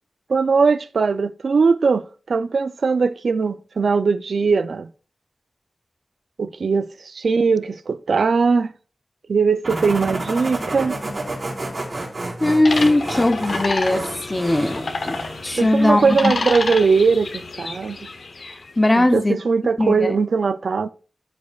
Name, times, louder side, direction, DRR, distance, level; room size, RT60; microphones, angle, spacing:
voice 1, 0.3-4.9 6.4-8.7 9.3-11.0 15.6-18.0 19.0-20.9, right 5 dB, 90° right, 0.4 m, -20 dB
sound 1, 9.6-15.4, right 2 dB, 40° right, 4.4 m, -30 dB
voice 2, 12.4-15.2 15.4-16.3 18.5-19.4 19.8-20.1, left 1 dB, 25° left, 0.7 m, -19 dB
sound 2, 12.6-18.7, left 3 dB, 80° left, 0.8 m, -29 dB
13.5 x 5.3 x 2.4 m
wide cardioid pair, 100°, 0 cm